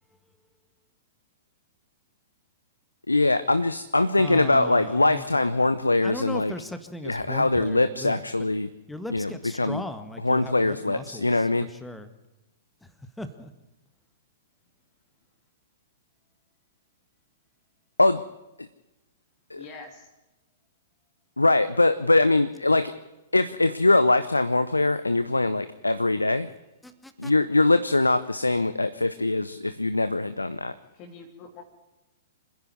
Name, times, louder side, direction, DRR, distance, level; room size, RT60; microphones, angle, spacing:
voice 1, 3.1-6.5 7.0-8.7 9.1-9.8 10.2-11.7 18.0-18.2 18.6-18.7 19.5-19.6 21.4-22.9 23.3-26.5 27.2-30.7, left 2 dB, 85° left, 13 dB, 0.7 m, -22 dB
voice 2, 4.2-5.7 6.0-8.2 8.9-12.1 12.8-12.9 13.2-13.5 26.8-27.3, left 1 dB, 5° left, 10 dB, 1.7 m, -38 dB
voice 3, 19.5-20.1 30.9-31.6, left 4 dB, 35° left, 4 dB, 3.0 m, -44 dB
26.0 x 10.5 x 9.7 m, 1.0 s
figure-of-eight pair, 110°, 0 cm